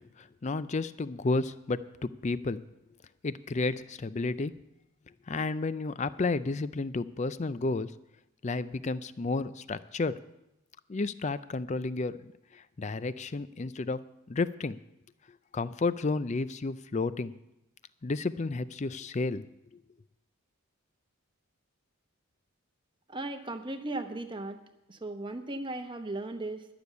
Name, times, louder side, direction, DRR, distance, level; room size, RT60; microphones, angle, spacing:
voice 1, 0.0-2.6 3.2-4.5 5.3-7.9 8.4-10.2 10.9-14.8 15.5-17.3 18.0-19.4, left 3 dB, 30° left, 15 dB, 0.4 m, -32 dB
voice 2, 23.1-24.6 24.9-26.8, right 2 dB, 20° right, 7 dB, 0.9 m, -37 dB
12.0 x 6.9 x 9.2 m, 0.89 s
head